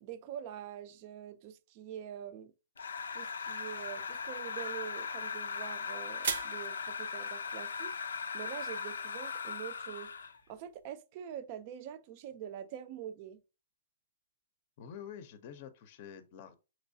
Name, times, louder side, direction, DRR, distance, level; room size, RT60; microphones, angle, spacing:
voice 1, 0.0-2.5 3.1-8.0 8.3-10.1 10.5-13.4, right 10 dB, 35° right, 0.5 m, -45 dB
sound 1, 2.8-10.4, left 5 dB, 90° left, 0.4 m, -39 dB
sound 2, 4.6-10.5, right 6 dB, 70° right, 0.8 m, -44 dB
voice 2, 14.8-16.5, left 8 dB, 40° left, 0.6 m, -47 dB
6.1 x 3.0 x 2.7 m
hypercardioid pair, 150°, 0 cm